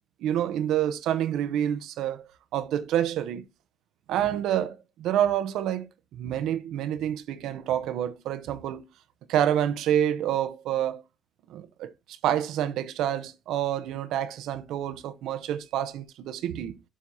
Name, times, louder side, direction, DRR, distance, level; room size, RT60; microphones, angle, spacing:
voice 1, 0.2-3.5 4.1-8.9 9.3-11.0 11.5-11.9 12.2-16.8, right 10 dB, 85° right, 0.7 m, -28 dB
12.0 x 5.7 x 2.7 m
cardioid pair, 90°, 0 cm